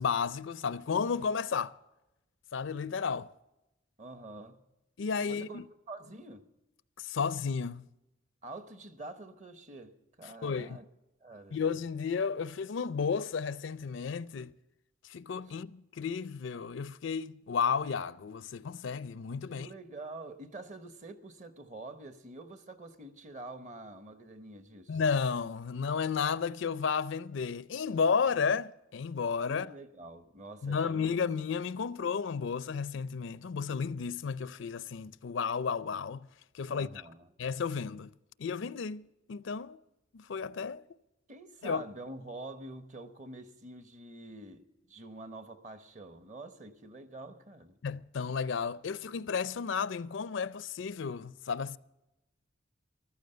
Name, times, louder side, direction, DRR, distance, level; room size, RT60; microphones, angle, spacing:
voice 1, 0.0-1.7 2.5-3.3 5.0-5.6 7.0-7.9 10.4-10.8 11.5-14.5 15.0-19.7 24.9-29.7 30.6-36.3 36.5-36.9 37.4-38.1 38.4-39.8 40.1-40.8 41.6-41.8 47.8-51.8, left 6 dB, 65° left, 0.4 m, -33 dB
voice 2, 4.0-4.6 5.2-5.6 5.9-6.4 8.4-10.9 11.2-11.6 19.5-25.0 29.5-31.1 36.7-37.3 41.3-47.8, right 2 dB, 35° right, 1.0 m, -46 dB
14.5 x 13.0 x 6.7 m
head